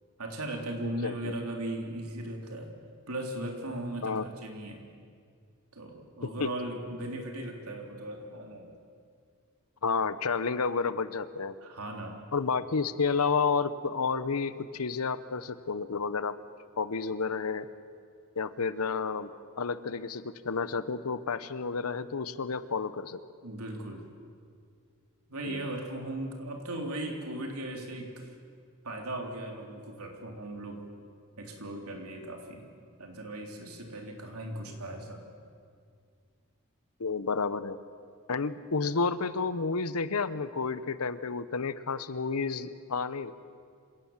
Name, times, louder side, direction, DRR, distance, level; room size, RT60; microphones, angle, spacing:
voice 1, 0.2-2.7 3.1-4.8 5.7-8.7 11.6-12.2 23.4-24.1 25.3-28.3 28.8-30.9 31.4-32.7 33.0-35.2, right 1 dB, 85° right, 2 dB, 3.5 m, -38 dB
voice 2, 1.0-1.3 4.0-4.3 6.4-6.5 9.8-11.5 12.3-16.3 16.8-17.7 18.4-19.3 19.6-23.2 25.4-25.7 37.0-37.8 38.3-43.3, left 5 dB, 80° left, 14 dB, 0.9 m, -30 dB
26.5 x 17.5 x 7.3 m, 2.2 s
head